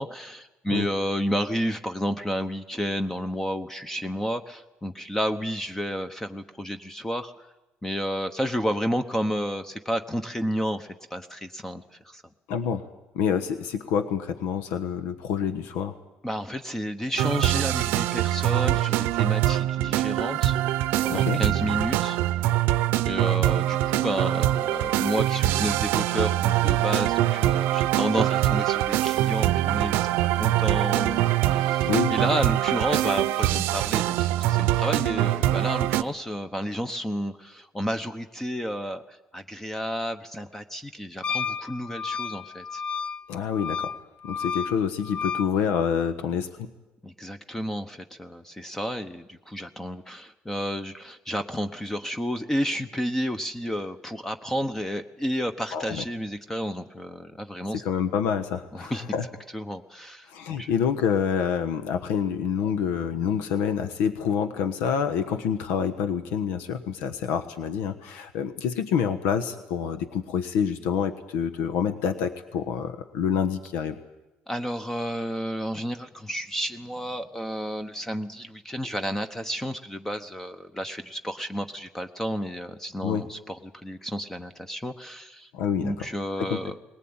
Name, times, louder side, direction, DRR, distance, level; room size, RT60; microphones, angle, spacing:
voice 1, 0.0-7.5 7.8-12.2 16.2-20.6 21.0-22.2 23.0-42.8 47.0-57.8 58.7-59.1 59.5-60.7 74.5-85.5 85.8-86.8, equal, 10° left, 9 dB, 1.0 m, -31 dB
voice 2, 12.5-12.9 13.1-16.0 21.1-21.4 31.9-32.2 43.3-43.9 44.2-46.7 55.7-56.0 57.7-59.3 60.3-74.0 83.0-83.2 85.5-86.1 86.4-86.6, left 7 dB, 85° left, 9 dB, 1.2 m, -27 dB
sound 1, 17.2-36.0, right 14 dB, 80° right, 0.7 m, -23 dB
Wind instrument woodwind instrument, 41.2-45.5, left 6 dB, 35° left, 0.8 m, -32 dB
20.5 x 18.5 x 8.9 m, 1.0 s
cardioid pair, 110°, 4 cm